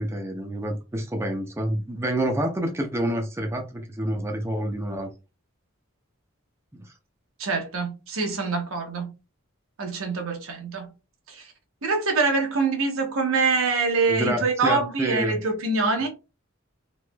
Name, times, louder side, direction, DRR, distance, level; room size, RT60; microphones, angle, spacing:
voice 1, 0.0-5.1 6.7-6.9 14.1-15.4, right 1 dB, 15° right, 0.5 m, -28 dB
voice 2, 7.4-9.1 9.8-10.9 11.3-11.5 11.8-16.1, right 4 dB, 90° right, 0.9 m, -25 dB
3.2 x 3.0 x 2.2 m
head